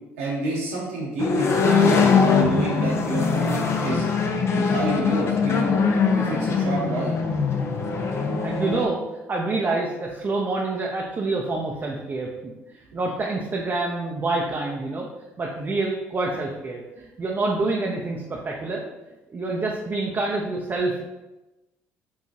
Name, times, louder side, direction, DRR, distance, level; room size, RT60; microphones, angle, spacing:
voice 1, 0.2-4.0 4.5-5.8 6.2-7.1, right 1 dB, 85° right, -6 dB, 1.3 m, -29 dB
sound 1, 1.2-8.9, left 5 dB, 45° left, 0.5 m, -22 dB
voice 2, 8.1-9.0 9.3-15.1 15.4-18.8 19.3-21.0, right 3 dB, 35° right, -2 dB, 0.5 m, -27 dB
4.7 x 2.3 x 2.7 m, 1.0 s
hypercardioid pair, 60°, 6 cm